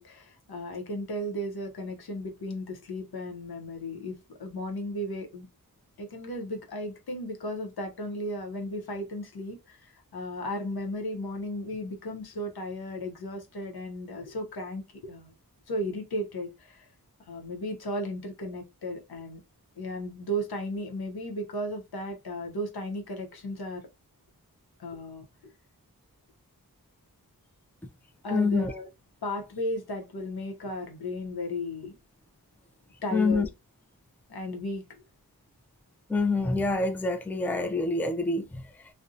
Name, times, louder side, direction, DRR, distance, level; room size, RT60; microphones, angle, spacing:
voice 1, 0.0-5.5 6.0-15.3 15.7-16.9 17.3-19.4 19.8-23.9 24.8-25.3 28.2-28.9 29.2-32.0 33.0-33.5 34.3-35.0, equal, 85° left, 0.7 m, -35 dB
voice 2, 28.3-28.7 33.1-33.5 36.1-38.6, left 3 dB, 5° left, 0.3 m, -26 dB
2.6 x 2.0 x 2.4 m
wide cardioid pair, 45°, 36 cm